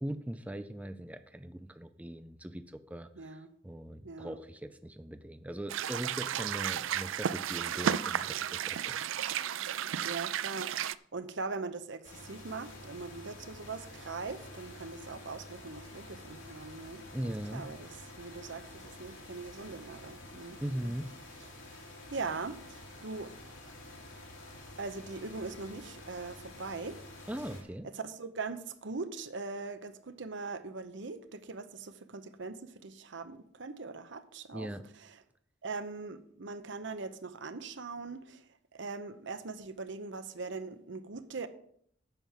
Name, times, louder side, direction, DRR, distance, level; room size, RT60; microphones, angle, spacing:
voice 1, 0.0-9.0 17.1-17.7 20.6-21.1 27.3-27.9 34.5-34.8, right 1 dB, 5° right, 0.4 m, -40 dB
voice 2, 3.2-3.5 4.0-4.4 10.0-10.7 11.1-17.9 18.2-20.9 21.6-23.3 24.8-27.0 27.8-34.7 35.0-35.2 35.6-41.5, right 4 dB, 65° right, 0.9 m, -41 dB
sound 1, 5.7-11.0, right 9 dB, 85° right, 0.4 m, -33 dB
sound 2, 12.0-27.6, left 1 dB, 85° left, 3.1 m, -49 dB
9.1 x 6.2 x 7.3 m
head